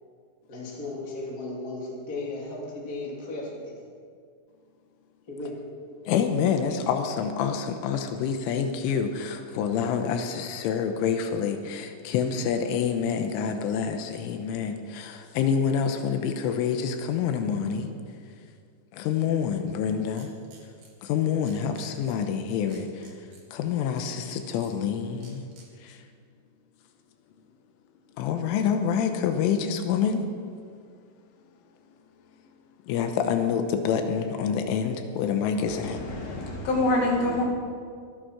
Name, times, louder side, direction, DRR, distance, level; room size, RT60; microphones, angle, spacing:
voice 1, 0.5-3.8 5.3-5.6, left 2 dB, 25° left, -3 dB, 2.6 m, -35 dB
voice 2, 6.1-17.9 18.9-20.3 21.0-23.2 23.5-25.5 25.8-26.0 28.2-30.2 32.9-36.0, left 7 dB, 85° left, 6 dB, 3.3 m, -27 dB
sound 1, 20.1-20.9 21.4-22.1 22.7-23.4 23.9-24.7 25.2-25.6, right 5 dB, 45° right, 3.6 m, -53 dB
voice 3, 35.7-37.4, left 1 dB, 55° left, -1 dB, 3.6 m, -26 dB
24.0 x 9.2 x 6.1 m, 2.2 s
omnidirectional pair, 5.7 m